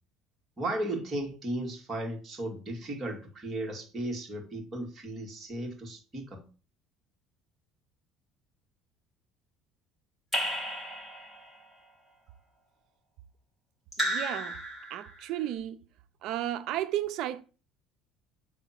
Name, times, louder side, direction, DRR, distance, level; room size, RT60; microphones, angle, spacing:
voice 1, 0.6-6.4, right 1 dB, 25° right, 2.2 m, -35 dB
Raindrop / Drip, 10.3-11.6 13.9-15.3, equal, ahead, 2.6 m, -33 dB
voice 2, 14.0-14.6 14.9-15.8 16.2-17.4, right 12 dB, 65° right, 0.5 m, -33 dB
7.0 x 3.5 x 5.8 m
cardioid pair, 120°, 0 cm